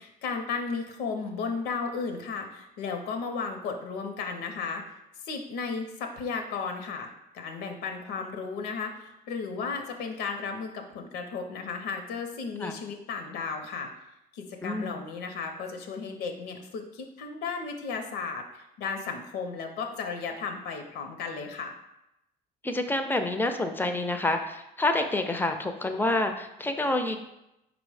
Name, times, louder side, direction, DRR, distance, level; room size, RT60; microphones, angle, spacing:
voice 1, 0.0-4.8 5.2-13.9 14.3-21.7, left 5 dB, 85° left, 5 dB, 0.6 m, -34 dB
voice 2, 14.6-15.0 22.6-27.2, left 2 dB, 10° left, 6 dB, 0.4 m, -28 dB
4.9 x 2.0 x 4.7 m, 0.87 s
cardioid pair, 110°, 17 cm